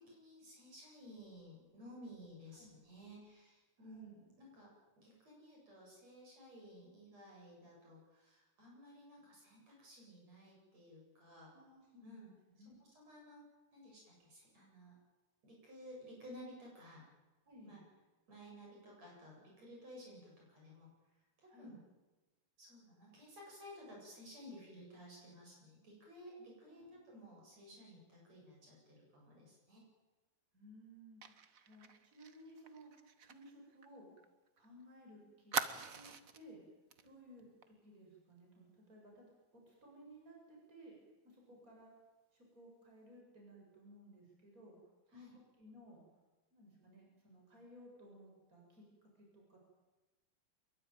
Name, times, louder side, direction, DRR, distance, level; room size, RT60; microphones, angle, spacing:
voice 1, 0.0-4.7 5.0-11.5 12.0-12.3 12.7-13.4 13.7-14.9 15.4-17.1 17.7-17.8 18.3-20.9 21.4-21.8 22.6-29.8 37.0-37.1 41.5-41.6 45.1-45.3, equal, 60° right, -2 dB, 9.4 m, -55 dB
voice 2, 3.8-4.2 11.5-12.8 17.5-17.8 21.5-21.7 26.7-27.2 30.5-32.9 33.2-34.1 34.6-36.1 36.3-36.6 37.0-40.9 41.2-41.9 42.3-44.7 45.1-46.0 46.5-49.6, equal, 25° right, -1 dB, 8.2 m, -59 dB
Fire, 31.2-34.7 34.9-35.0 35.5-36.5 36.9-37.1 37.4-37.6, right 7 dB, 75° right, 0.7 m, -43 dB
24.0 x 22.5 x 9.2 m, 1.2 s
omnidirectional pair, 3.4 m